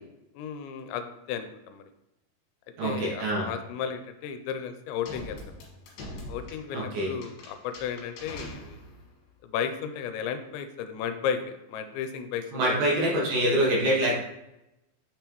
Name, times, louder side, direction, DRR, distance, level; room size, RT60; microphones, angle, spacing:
voice 1, 0.4-1.9 2.8-5.4 6.3-8.8 9.4-12.8, left 7 dB, 85° left, 8 dB, 2.8 m, -34 dB
voice 2, 2.8-3.5 6.7-7.1 12.5-14.2, right 1 dB, 65° right, -4 dB, 2.4 m, -25 dB
sound 1, 5.0-9.1, left 1 dB, 65° left, 2.9 m, -43 dB
6.7 x 5.4 x 3.0 m, 0.88 s
omnidirectional pair, 5.2 m